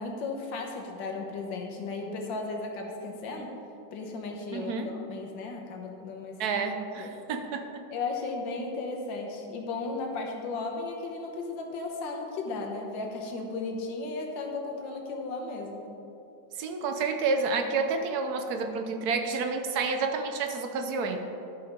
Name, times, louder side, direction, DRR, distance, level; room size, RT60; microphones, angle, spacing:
voice 1, 0.0-3.6 3.9-6.4 7.0-7.2 7.9-15.9, left 3 dB, 80° left, 1 dB, 1.8 m, -35 dB
voice 2, 4.5-4.9 6.4-7.8 16.6-21.2, right 4 dB, 65° right, 6 dB, 1.2 m, -29 dB
11.5 x 5.7 x 5.1 m, 2.9 s
omnidirectional pair, 2.0 m